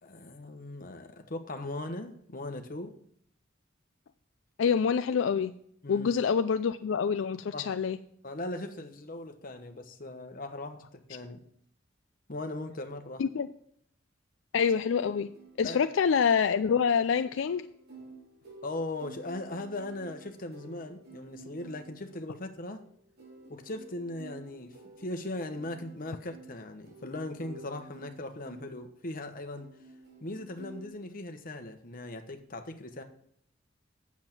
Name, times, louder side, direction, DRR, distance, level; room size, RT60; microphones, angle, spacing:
voice 1, 0.0-3.0 5.8-6.1 7.5-7.7 8.2-11.4 12.3-13.2 15.6-15.8 18.6-22.8 23.5-29.7 30.2-33.0, left 2 dB, 45° left, 1.1 m, -39 dB
voice 2, 4.6-5.5 5.9-8.0 13.2-13.5 14.5-15.3 15.6-17.7, left 6 dB, 75° left, 0.4 m, -26 dB
sound 1, 14.9-30.9, right 3 dB, 55° right, 3.4 m, -52 dB
8.7 x 7.3 x 6.0 m
head